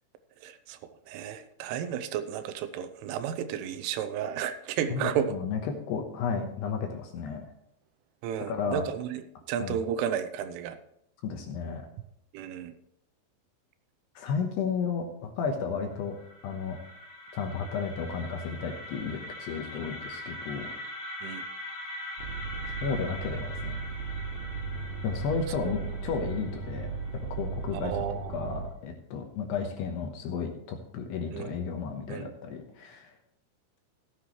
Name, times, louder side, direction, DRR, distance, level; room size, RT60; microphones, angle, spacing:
voice 1, 0.4-0.8 1.1-5.3 8.2-9.2 9.5-10.8 12.3-12.7 21.2-21.4 27.7-28.7 31.3-31.6 32.1-32.3, right 9 dB, 85° right, 10 dB, 3.2 m, -33 dB
voice 2, 4.9-7.5 8.5-8.8 9.6-9.8 11.2-11.8 14.2-16.2 16.4-16.8 17.3-20.7 22.8-23.8 25.0-26.9 27.3-28.0 28.3-33.1, left 5 dB, 75° left, 4 dB, 2.7 m, -33 dB
sound 1, 15.9-27.9, left 1 dB, 55° left, 2.9 m, -42 dB
sound 2, 22.2-28.7, right 4 dB, 45° right, 2.7 m, -36 dB
15.5 x 10.0 x 3.1 m, 0.75 s
omnidirectional pair, 5.6 m